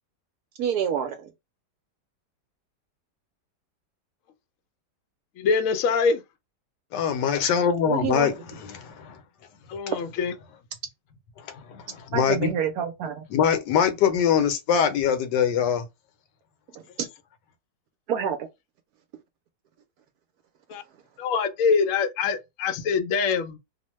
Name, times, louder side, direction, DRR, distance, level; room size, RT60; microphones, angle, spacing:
voice 1, 0.6-1.3 7.9-8.3 12.1-13.2 16.7-16.8 18.1-18.4, right 8 dB, 70° right, 1.0 m, -27 dB
voice 2, 5.4-6.2 9.7-10.3 20.7-20.8 21.2-23.6, left 5 dB, 65° left, 0.8 m, -24 dB
voice 3, 6.9-9.2 11.5-12.5 13.3-15.9, left 8 dB, 85° left, 1.3 m, -23 dB
2.9 x 2.1 x 3.0 m
omnidirectional pair, 1.8 m